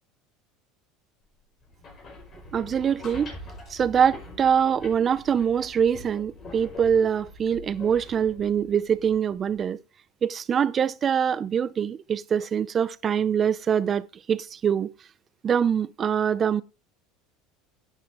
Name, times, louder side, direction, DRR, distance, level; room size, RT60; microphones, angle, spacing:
sound 1, 1.6-9.6, left 2 dB, 35° left, 5.4 m, -44 dB
voice 1, 2.5-3.3 3.7-9.8 10.2-14.9 15.4-16.6, right 8 dB, 35° right, 0.7 m, -24 dB
11.0 x 9.2 x 3.7 m
supercardioid pair, 115°, 0 cm